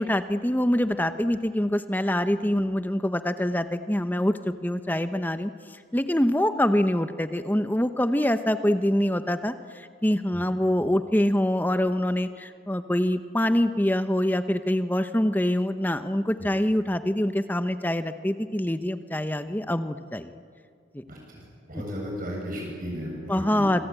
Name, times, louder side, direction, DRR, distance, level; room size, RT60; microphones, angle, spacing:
voice 1, 0.0-5.5 5.9-20.3 20.9-21.0 23.3-23.9, left 1 dB, 10° left, 10 dB, 0.8 m, -25 dB
voice 2, 21.1-21.4 21.7-23.8, equal, 45° right, -2 dB, 7.7 m, -35 dB
26.0 x 24.0 x 9.0 m, 2.1 s
head